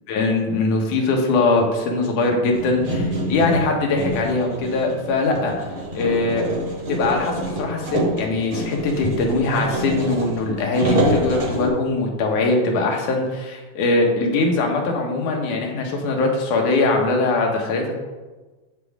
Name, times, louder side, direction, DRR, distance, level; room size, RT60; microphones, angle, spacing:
voice 1, 0.1-5.7 5.9-6.5 6.9-18.0, left 3 dB, 90° left, 1 dB, 2.7 m, -21 dB
sound 1, 2.5-11.7, equal, 50° right, 0.7 m, -26 dB
8.1 x 7.6 x 3.5 m, 1.3 s
omnidirectional pair, 3.4 m